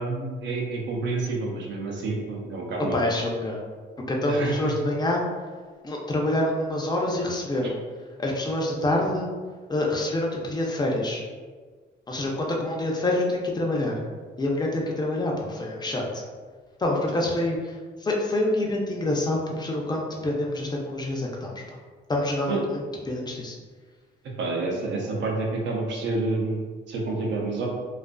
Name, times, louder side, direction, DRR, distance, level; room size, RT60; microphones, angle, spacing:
voice 1, 0.0-3.0 4.3-4.7 7.6-7.7 17.2-17.3 22.5-22.6 24.4-27.7, right 3 dB, 65° right, -1 dB, 0.6 m, -29 dB
voice 2, 2.9-3.6 4.1-5.2 5.8-7.8 8.2-9.3 9.7-11.2 12.1-14.0 14.4-16.2 16.8-21.8 22.1-23.6, left 1 dB, 20° left, -1 dB, 0.5 m, -26 dB
2.4 x 2.4 x 2.2 m, 1.5 s
cardioid pair, 90°, 20 cm